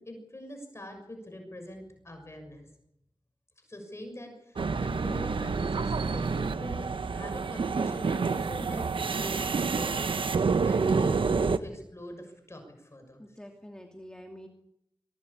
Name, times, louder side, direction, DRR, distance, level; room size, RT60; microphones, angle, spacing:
voice 1, 0.0-2.7 3.6-6.9 7.1-13.2, left 1 dB, 30° left, 4 dB, 6.4 m, -43 dB
sound 1, 4.6-11.6, right 4 dB, 85° right, 1.0 m, -28 dB
voice 2, 13.2-14.5, equal, 10° left, 2 dB, 2.5 m, -46 dB
23.0 x 18.0 x 8.7 m, 0.79 s
wide cardioid pair, 75°, 9 cm